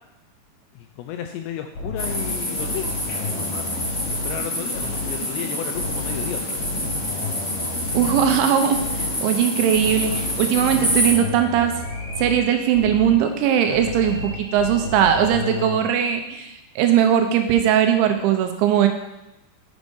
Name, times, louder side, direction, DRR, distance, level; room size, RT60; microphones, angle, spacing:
voice 1, 0.7-2.9 3.3-3.8 4.1-6.6 9.8-10.0, left 9 dB, 85° left, 5 dB, 2.6 m, -33 dB
sound 1, 1.7-5.3 5.7-9.3 9.7-13.3 13.7-15.8, left 3 dB, 40° left, 2.5 m, -32 dB
sound 2, 2.0-11.1, left 1 dB, 20° left, 2.0 m, -27 dB
voice 2, 7.9-11.7 12.2-18.9, right 9 dB, 85° right, 6 dB, 3.2 m, -19 dB
sound 3, 11.7-16.5, left 1 dB, 65° left, 2.7 m, -41 dB
6.6 x 6.2 x 5.4 m, 0.93 s
omnidirectional pair, 5.3 m